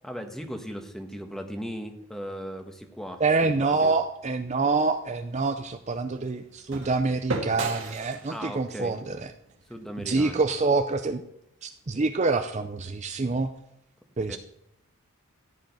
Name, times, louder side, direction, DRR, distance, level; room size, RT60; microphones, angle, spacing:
voice 1, 0.0-3.9 8.3-8.9 9.7-10.4 14.3-14.4, equal, ahead, 5 dB, 1.2 m, -37 dB
voice 2, 3.2-9.3 10.0-11.2 11.6-13.5 14.2-14.4, right 3 dB, 30° right, 8 dB, 0.5 m, -26 dB
sound 1, 4.5-10.6, right 2 dB, 55° right, 2.0 m, -38 dB
14.5 x 5.1 x 9.3 m, 0.80 s
head